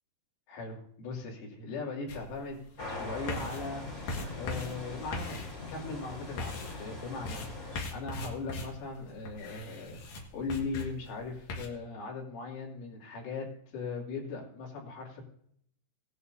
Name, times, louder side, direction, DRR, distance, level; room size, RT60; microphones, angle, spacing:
voice 1, 0.5-3.8 4.4-10.0 10.3-15.2, left 3 dB, 85° left, -2 dB, 5.3 m, -39 dB
sound 1, 2.1-11.7, left 3 dB, 55° left, 2.8 m, -41 dB
sound 2, 2.8-7.8, left 2 dB, 20° left, 3.2 m, -42 dB
18.0 x 11.0 x 2.7 m, 0.67 s
omnidirectional pair, 5.5 m